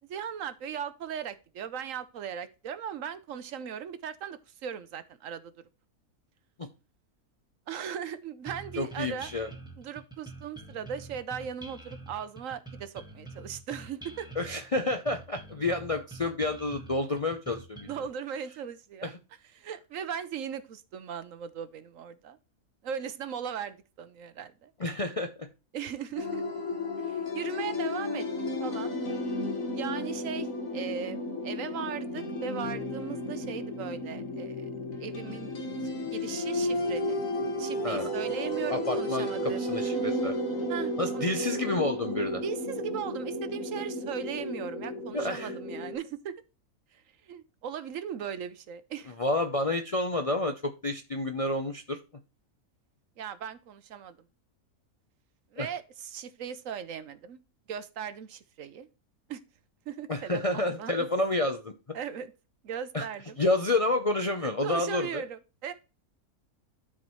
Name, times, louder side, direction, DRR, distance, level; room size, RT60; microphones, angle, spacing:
voice 1, 0.1-5.5 7.7-9.3 9.8-14.3 17.9-19.1 19.5-22.4 22.8-24.7 25.7-26.4 27.0-28.3 28.6-28.9 29.7-30.5 30.7-34.7 35.0-35.5 36.1-37.2 37.6-40.0 40.7-41.3 42.4-46.4 46.9-49.1 53.2-54.2 55.5-57.4 57.7-58.9 59.3-59.4 59.9-60.9 61.9-62.3 62.6-63.4 64.4-65.7, right 8 dB, 65° right, 1.1 m, -38 dB
sound 1, 8.5-18.1, right 3 dB, 5° right, 1.5 m, -46 dB
voice 2, 8.8-9.5 14.4-17.9 19.0-19.1 24.8-25.5 37.8-38.1 38.7-40.3 41.0-42.4 45.1-45.5 49.2-52.0 55.6-55.7 60.1-61.7 62.9-63.1 63.4-65.2, left 2 dB, 40° left, 0.5 m, -29 dB
sound 2, 26.2-46.0, left 1 dB, 65° left, 2.1 m, -33 dB
12.0 x 4.5 x 3.0 m
omnidirectional pair, 1.5 m